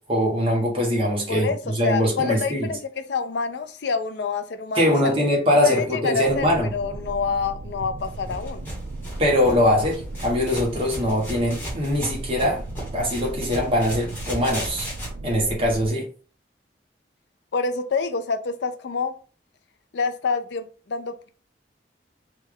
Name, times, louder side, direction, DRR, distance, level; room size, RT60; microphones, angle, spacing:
voice 1, 0.1-2.8 4.7-6.7 9.2-12.6 12.9-14.9 15.2-16.1, left 1 dB, 30° right, 1.0 m, -22 dB
voice 2, 1.8-2.8 3.1-5.1 5.6-6.5 6.7-8.7 17.5-19.1 19.9-21.3, left 5 dB, 75° left, 0.4 m, -27 dB
sound 1, 6.2-15.9, right 2 dB, 75° right, 0.4 m, -37 dB
sound 2, 8.0-15.1, equal, 10° left, 1.2 m, -36 dB
3.2 x 2.3 x 3.4 m
head